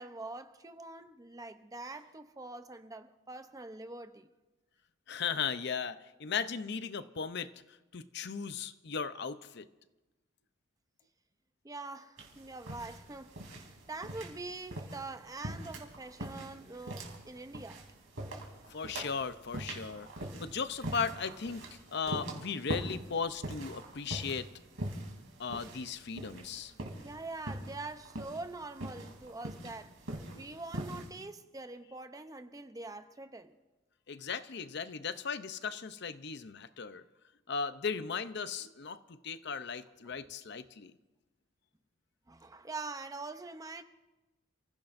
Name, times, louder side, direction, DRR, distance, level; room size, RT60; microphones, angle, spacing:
voice 1, 0.0-4.3 11.6-17.8 27.0-30.0 30.3-33.6 40.1-40.3 42.3-43.8, right 3 dB, 20° right, 0.7 m, -44 dB
voice 2, 5.1-7.5 7.9-9.7 18.7-21.6 21.9-24.5 25.4-26.7 30.3-30.4 34.1-37.0 37.5-40.9, left 6 dB, 60° left, 0.7 m, -37 dB
sound 1, 12.2-31.1, right 1 dB, 90° right, 3.2 m, -43 dB
29.0 x 15.5 x 2.6 m
head